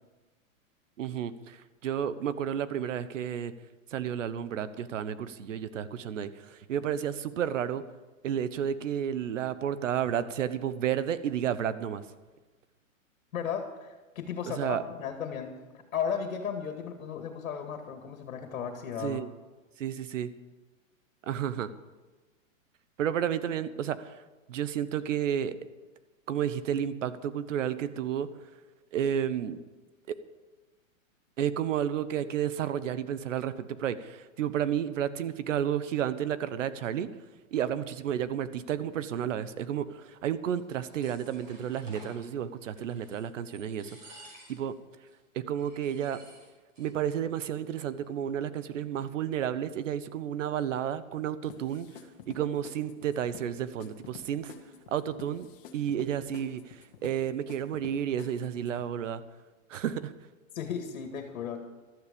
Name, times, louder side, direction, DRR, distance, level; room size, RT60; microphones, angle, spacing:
voice 1, 1.0-3.5 3.9-7.8 8.2-12.0 14.5-14.8 19.0-19.3 19.8-20.3 21.3-21.7 23.0-24.2 24.5-25.5 26.3-28.3 28.9-29.6 31.4-37.1 37.5-43.9 44.2-44.8 45.3-46.2 46.8-51.9 52.3-54.5 54.9-55.5 55.7-59.2 59.7-60.1, right 9 dB, 65° right, 14 dB, 1.1 m, -31 dB
voice 2, 13.3-15.5 15.9-19.2 60.5-61.6, left 7 dB, 75° left, 5 dB, 2.2 m, -35 dB
sound 1, 40.6-42.2 42.7-43.3 43.5-44.7 45.1-45.2 45.6-46.9 47.2-47.3 47.5-48.1, right 1 dB, 20° right, 5.5 m, -53 dB
sound 2, 51.5-58.9, left 7 dB, 40° left, 1.9 m, -50 dB
15.5 x 13.0 x 5.3 m, 1.2 s
hypercardioid pair, 165°, 41 cm